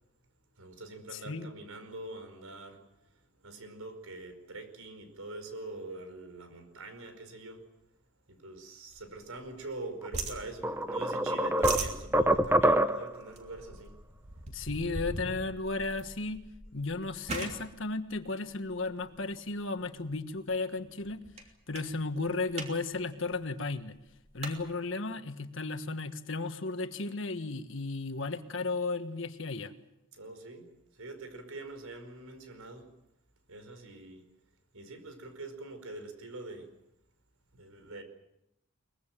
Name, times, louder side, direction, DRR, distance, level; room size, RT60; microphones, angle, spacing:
voice 1, 0.5-7.7 8.3-14.0 14.3-14.4 30.1-32.9 33.5-34.2 34.7-36.7 37.5-38.0, right 2 dB, 85° right, 8 dB, 5.0 m, -44 dB
sound 1, 8.9-9.8 10.1-11.1 11.4-19.2 19.8-20.1 20.5-20.6 20.9-21.4 21.7-21.9 22.3-22.7 23.0-23.1 23.3-24.6, right 2 dB, 30° right, 3.1 m, -40 dB
sound 2, 10.0-10.2 10.6-13.2, right 1 dB, 10° right, 0.8 m, -26 dB
voice 2, 14.5-21.3 21.7-23.9 24.3-29.7, left 3 dB, 65° left, 9 dB, 1.5 m, -34 dB
23.0 x 21.5 x 7.5 m, 0.83 s
head